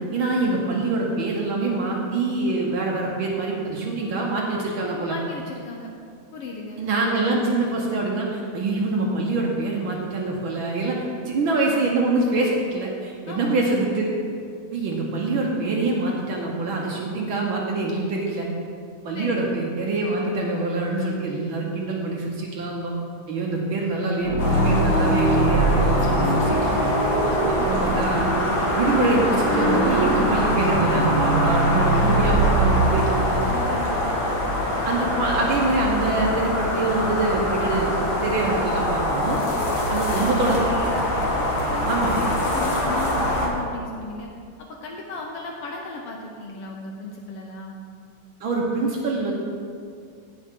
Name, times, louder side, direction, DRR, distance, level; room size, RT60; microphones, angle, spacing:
voice 1, 0.1-5.1 6.8-14.1 14.7-18.5 19.0-22.9 23.3-26.9 27.2-28.3 28.7-33.4 34.8-39.4 39.9-40.6 41.9-42.1 48.4-49.3, right 2 dB, 70° right, -2 dB, 1.2 m, -25 dB
voice 2, 5.1-5.9 6.3-6.8 13.3-13.7 19.1-19.5 27.3-28.0 33.4-34.1 39.5-41.1 41.4-44.3 44.7-47.7, left 2 dB, 80° left, 0 dB, 1.3 m, -35 dB
sound 1, 24.2-33.9, right 2 dB, 45° right, 2.3 m, -23 dB
sound 2, 24.4-43.5, left 1 dB, 40° left, 1.6 m, -24 dB
16.0 x 6.2 x 3.7 m, 2.3 s
omnidirectional pair, 3.5 m